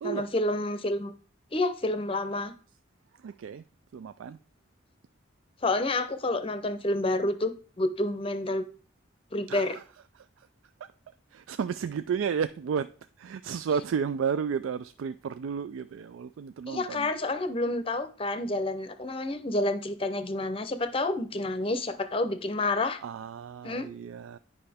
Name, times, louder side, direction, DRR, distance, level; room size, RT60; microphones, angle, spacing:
voice 1, 0.0-1.1 1.5-2.5 5.6-8.6 9.3-9.8 16.7-23.0 23.6-23.9, left 2 dB, 30° left, 0.6 m, -29 dB
voice 2, 3.2-3.6 3.9-4.4 9.5-9.8 11.3-12.9 13.2-17.1 23.0-24.4, right 7 dB, 85° right, 0.3 m, -32 dB
9.8 x 5.5 x 3.4 m
head